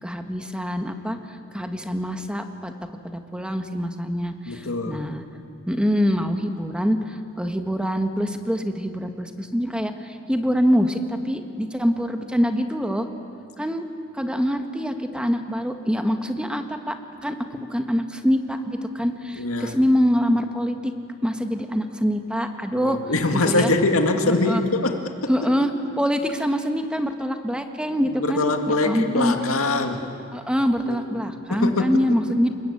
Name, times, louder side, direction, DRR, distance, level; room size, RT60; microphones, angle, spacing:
voice 1, 0.0-2.7 3.0-5.2 5.7-13.1 13.6-13.8 14.1-20.9 21.2-23.1 23.5-23.7 24.3-24.6 25.3-25.7 26.0-28.5 28.8-29.3 30.3-32.5, equal, 5° right, 6 dB, 1.5 m, -24 dB
voice 2, 4.5-5.0 19.4-19.8 22.7-25.7 28.2-30.1 30.9-31.0 31.5-32.2, left 2 dB, 80° left, 5 dB, 2.1 m, -23 dB
30.0 x 21.0 x 8.7 m, 2.5 s
head